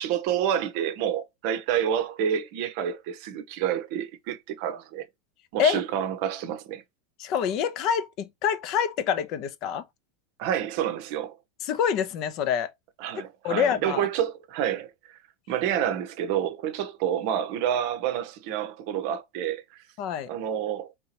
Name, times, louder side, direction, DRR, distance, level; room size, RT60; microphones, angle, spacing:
voice 1, 0.0-5.0 5.5-6.8 10.4-11.3 13.0-14.9 15.5-19.6 20.3-20.9, right 9 dB, 55° right, 0.6 m, -28 dB
voice 2, 7.2-9.8 11.6-12.7 13.4-14.1 20.0-20.3, left 8 dB, 50° left, 0.6 m, -26 dB
3.4 x 2.8 x 2.8 m
hypercardioid pair, 85°, 0 cm